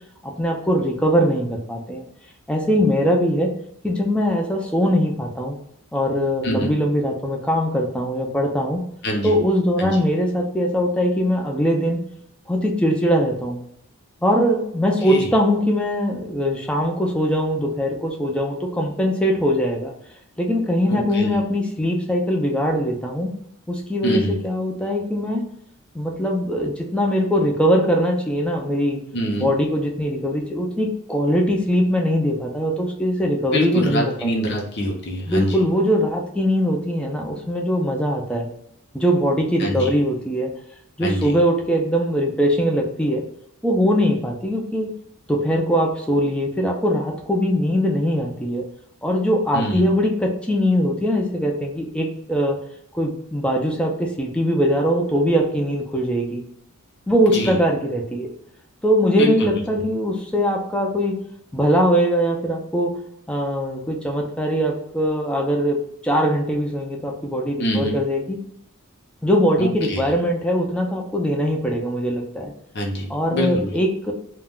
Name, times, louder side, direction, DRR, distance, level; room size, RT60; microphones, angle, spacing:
voice 1, 0.2-2.0 2.5-3.5 3.8-5.5 5.9-8.8 9.2-12.0 12.5-13.6 14.2-19.9 20.4-23.3 23.7-25.4 25.9-29.0 29.4-34.3 35.3-38.5 38.9-40.5 41.0-43.2 43.6-44.9 45.3-48.7 49.0-52.6 52.9-56.4 57.1-58.3 58.8-61.2 61.5-63.0 63.3-65.8 66.0-68.4 69.2-72.5 73.1-74.1, equal, 5° left, 0 dB, 0.4 m, -21 dB
voice 2, 9.0-9.4 9.8-10.0 15.0-15.3 20.9-21.4 24.0-24.4 29.1-29.5 33.5-35.6 39.6-39.9 41.0-41.4 49.5-49.9 57.3-57.6 59.2-59.5 67.6-68.0 69.6-70.1 72.7-73.8, equal, 50° left, 0 dB, 0.7 m, -25 dB
2.3 x 2.1 x 3.5 m, 0.73 s
head